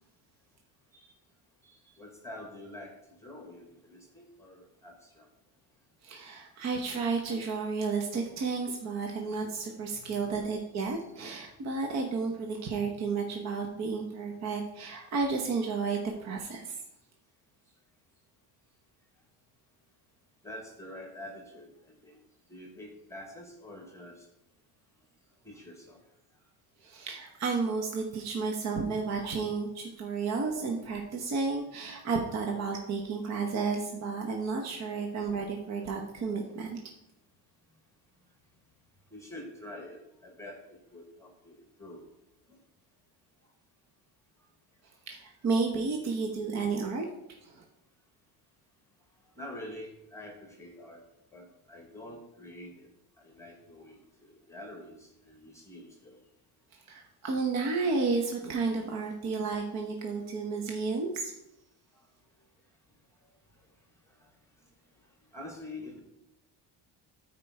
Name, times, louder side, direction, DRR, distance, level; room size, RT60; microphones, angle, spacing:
voice 1, 2.0-2.9 3.2-5.2 9.9-10.2 10.9-11.4 20.4-21.7 22.0-22.2 22.5-24.2 25.4-26.0 39.1-41.3 41.8-42.0 49.4-51.0 51.3-52.9 53.2-56.2 65.3-66.0, left 1 dB, 5° left, 2 dB, 1.2 m, -46 dB
voice 2, 6.0-16.8 26.8-36.8 45.1-47.1 47.4-47.6 56.7-61.3, right 4 dB, 40° right, 2 dB, 1.0 m, -32 dB
13.5 x 4.6 x 4.8 m, 0.88 s
cardioid pair, 170°, 41 cm